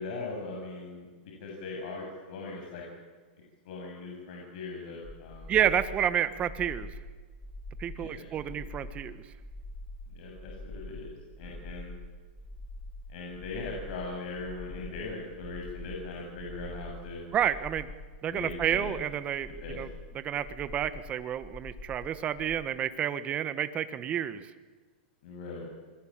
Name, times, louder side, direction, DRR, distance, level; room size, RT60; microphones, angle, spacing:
voice 1, 0.0-2.8 3.6-5.5 7.9-8.6 10.1-11.1 11.4-11.9 13.1-17.2 18.3-19.0 19.6-19.8 25.2-25.7, left 3 dB, 55° left, -1 dB, 7.5 m, -40 dB
sound 1, 5.0-22.6, left 1 dB, 10° left, 1.7 m, -45 dB
voice 2, 5.5-6.9 7.8-9.2 17.3-17.9 18.2-19.9 20.1-24.4, right 9 dB, 20° right, 12 dB, 1.4 m, -30 dB
27.5 x 22.0 x 8.9 m, 1.4 s
hypercardioid pair, 155°, 6 cm